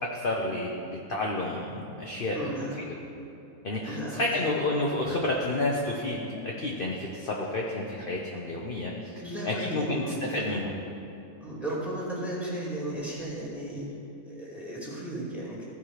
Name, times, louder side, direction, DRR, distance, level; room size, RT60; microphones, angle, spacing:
voice 1, 0.0-2.5 3.6-10.7, left 2 dB, 45° left, -2 dB, 1.0 m, -30 dB
voice 2, 2.3-2.8 3.9-4.4 9.2-10.5 11.4-13.9 14.2-15.6, right 1 dB, ahead, -5 dB, 2.4 m, -35 dB
15.0 x 5.5 x 4.9 m, 2.9 s
omnidirectional pair, 1.5 m